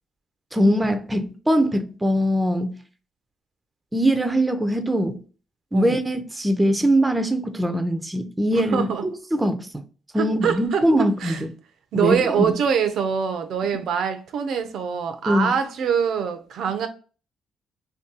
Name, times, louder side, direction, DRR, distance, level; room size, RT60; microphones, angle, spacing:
voice 1, 0.5-2.8 3.9-5.2 5.7-9.8 10.1-11.5 11.9-12.6 15.3-15.6, equal, 10° right, 0.5 m, -22 dB
voice 2, 8.6-9.0 10.2-10.8 11.2-11.4 11.9-16.9, right 7 dB, 70° right, 0.5 m, -24 dB
2.7 x 2.3 x 3.5 m
cardioid pair, 90°, 0 cm